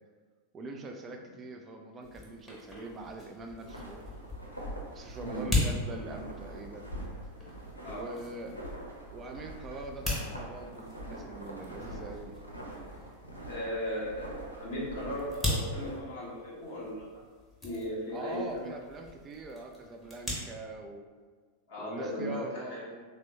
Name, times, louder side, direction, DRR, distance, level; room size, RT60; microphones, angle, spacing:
voice 1, 0.5-4.0 4.9-6.9 7.9-8.5 9.1-12.4 18.1-21.1 21.8-23.0, right 2 dB, 25° right, 3 dB, 0.3 m, -43 dB
sound 1, 2.0-20.3, left 2 dB, 5° left, 0.8 m, -39 dB
sound 2, 3.6-16.0, right 1 dB, 90° left, 0.5 m, -44 dB
voice 2, 5.2-5.5 7.8-8.1 13.4-17.1 17.6-18.7 21.7-22.8, equal, 55° left, -6 dB, 0.7 m, -37 dB
3.3 x 2.0 x 2.8 m, 1.5 s
figure-of-eight pair, 90°, 0 cm